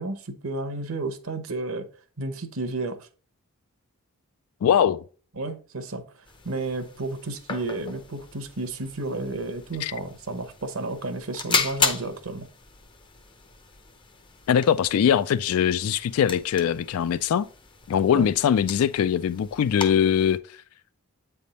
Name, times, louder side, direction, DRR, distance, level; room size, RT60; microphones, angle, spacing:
voice 1, 0.0-1.9 2.2-3.1 5.4-6.0 6.4-12.5 18.1-18.3, right 2 dB, 65° right, 0.9 m, -32 dB
voice 2, 4.6-5.0 9.8-9.9 14.5-17.5 17.9-20.4, left 8 dB, 75° left, 0.3 m, -22 dB
sound 1, 6.3-20.4, left 5 dB, 20° left, 0.5 m, -35 dB
8.4 x 3.5 x 4.1 m
head